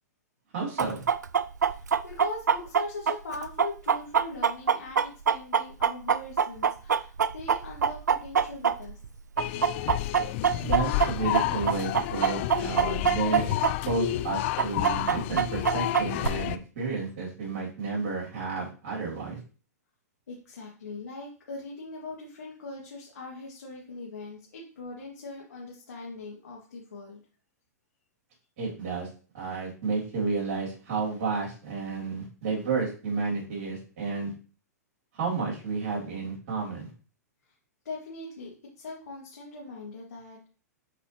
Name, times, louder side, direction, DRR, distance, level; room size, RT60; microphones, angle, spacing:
voice 1, 0.5-1.0 10.6-19.4 28.6-29.1 29.3-34.3 35.1-36.9, right 4 dB, 50° right, -3 dB, 3.4 m, -31 dB
Chicken rooster, 0.8-9.1 9.4-13.7 14.0-14.1 14.6-16.3, right 7 dB, 85° right, 0.4 m, -24 dB
voice 2, 1.7-9.0 20.3-27.2 37.8-40.5, left 3 dB, 70° left, -4 dB, 2.1 m, -41 dB
sound 1, 9.4-16.6, left 15 dB, 45° left, 0.4 m, -30 dB
7.6 x 4.2 x 3.0 m, 0.38 s
figure-of-eight pair, 110°, 9 cm